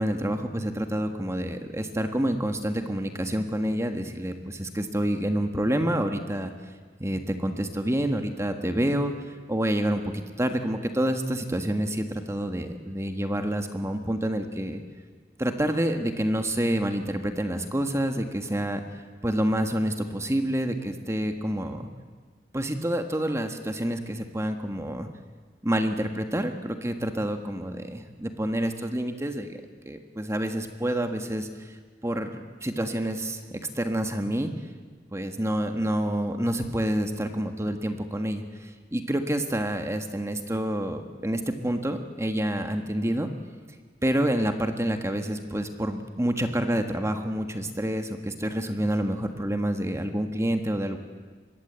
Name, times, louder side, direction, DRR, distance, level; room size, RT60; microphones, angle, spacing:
voice 1, 0.0-6.5 7.0-9.1 9.5-14.8 15.4-18.8 19.2-21.9 22.5-25.1 25.6-31.8 32.0-33.4 33.7-34.5 35.1-43.3 44.0-51.0, right 1 dB, 15° right, 6 dB, 1.5 m, -28 dB
25.5 x 21.5 x 8.2 m, 1.5 s
head